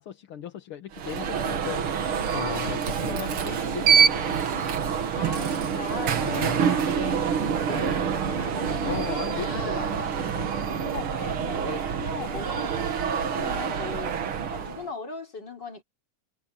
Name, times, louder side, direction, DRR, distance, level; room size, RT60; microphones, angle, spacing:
voice 1, 0.0-4.4 6.2-6.6 8.8-10.5, left 9 dB, 55° left, 1.9 m, -37 dB
Alarm, 0.9-14.9, right 7 dB, 50° right, 2.1 m, -26 dB
voice 2, 2.7-3.3 5.1-9.8 10.8-14.2 14.5-15.8, left 3 dB, 35° left, 4.9 m, -39 dB
omnidirectional pair, 3.5 m